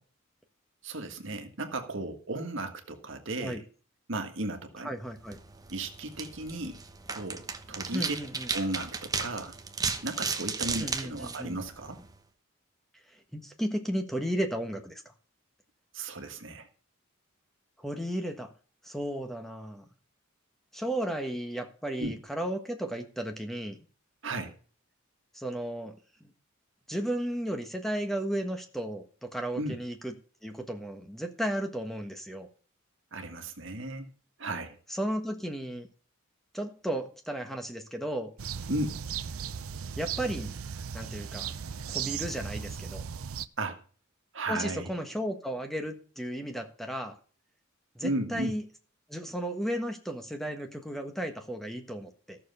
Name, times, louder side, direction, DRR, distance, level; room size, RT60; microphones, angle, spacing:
voice 1, 0.8-3.6 4.1-4.9 5.7-6.8 7.1-8.2 8.5-9.5 10.0-12.0 15.9-16.7 22.0-22.1 24.2-24.5 29.6-29.8 33.1-34.1 34.4-34.8 38.7-39.0 43.6-43.8 44.3-44.9 48.0-48.5, right 2 dB, 60° right, 5 dB, 1.7 m, -35 dB
voice 2, 4.8-5.4 7.9-8.5 10.8-11.6 13.1-15.0 17.8-18.5 18.8-19.8 20.7-23.8 25.3-25.9 26.2-26.3 26.9-30.1 30.4-32.5 34.9-35.9 36.5-38.3 40.0-40.5 40.9-41.5 41.9-43.0 44.5-47.2 47.9-48.6 49.1-52.4, right 1 dB, ahead, 5 dB, 1.4 m, -34 dB
sound 1, 5.2-12.1, right 4 dB, 20° right, 1.0 m, -35 dB
sound 2, 38.4-43.5, right 7 dB, 90° right, 0.6 m, -37 dB
14.0 x 6.9 x 5.5 m, 0.40 s
head